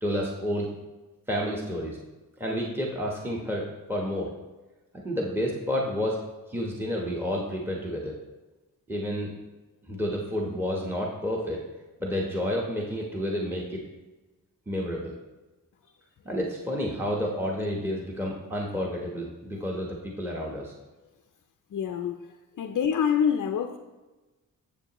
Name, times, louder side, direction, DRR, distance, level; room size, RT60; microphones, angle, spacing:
voice 1, 0.0-0.7 1.3-2.0 2.4-4.3 4.9-6.2 6.5-8.1 8.9-9.3 9.9-11.6 12.0-13.8 14.7-15.1 16.2-20.7, equal, 5° right, -2 dB, 1.0 m, -30 dB
voice 2, 21.7-22.2 22.6-23.8, left 8 dB, 60° left, 5 dB, 0.6 m, -26 dB
10.0 x 7.2 x 3.0 m, 1.2 s
wide cardioid pair, 115°, 35 cm